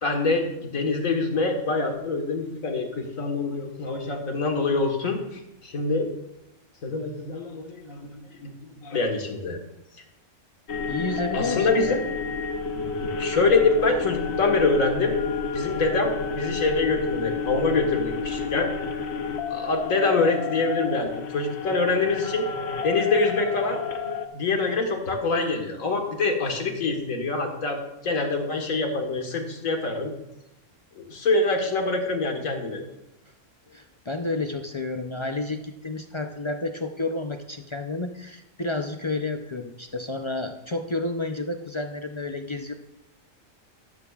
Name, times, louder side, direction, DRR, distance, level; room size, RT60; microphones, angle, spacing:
voice 1, 0.0-6.1 6.8-8.5 8.8-9.6 11.3-12.0 12.8-15.2 15.5-18.7 19.5-22.5 22.8-23.8 24.3-27.8 28.0-30.1 31.0-32.8, left 3 dB, 85° left, 3 dB, 1.9 m, -25 dB
sound 1, 10.7-24.3, left 5 dB, 55° left, 1.1 m, -30 dB
voice 2, 10.9-12.0 33.7-42.7, left 2 dB, 40° left, 5 dB, 0.4 m, -31 dB
13.5 x 12.0 x 2.4 m, 0.90 s
omnidirectional pair, 1.4 m